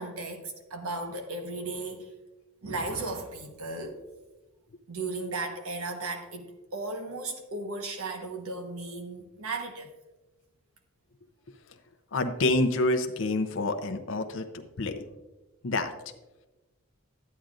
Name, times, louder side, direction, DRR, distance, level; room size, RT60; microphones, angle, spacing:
voice 1, 0.0-2.1 2.6-4.0 4.9-9.9, right 2 dB, 90° right, 5 dB, 1.2 m, -35 dB
voice 2, 12.1-14.4 14.8-14.9 15.6-15.9, left 2 dB, 65° left, 6 dB, 0.6 m, -27 dB
11.5 x 9.3 x 2.5 m, 1.1 s
head